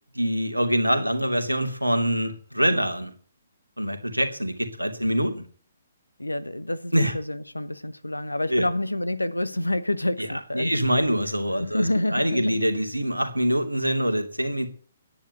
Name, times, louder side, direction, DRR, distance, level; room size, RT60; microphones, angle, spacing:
voice 1, 0.1-3.1 3.8-5.4 6.9-7.1 8.5-8.7 10.2-14.7, equal, 90° right, 2.8 m, -25 dB
voice 2, 6.2-10.7 11.6-12.6, left 1 dB, 85° left, 1.2 m, -28 dB
10.5 x 10.0 x 8.1 m
figure-of-eight pair, 130°, 0 cm